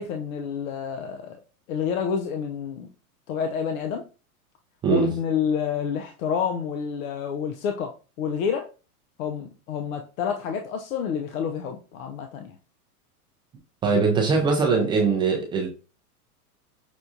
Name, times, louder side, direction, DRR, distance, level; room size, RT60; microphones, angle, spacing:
voice 1, 0.0-1.4 1.7-2.9 3.3-4.0 4.9-7.9 8.2-8.7 9.2-12.5, left 7 dB, 65° left, 4 dB, 0.7 m, -28 dB
voice 2, 13.8-15.7, right 4 dB, 10° right, 0 dB, 0.4 m, -21 dB
6.1 x 2.3 x 2.7 m, 0.34 s
hypercardioid pair, 130°, 45 cm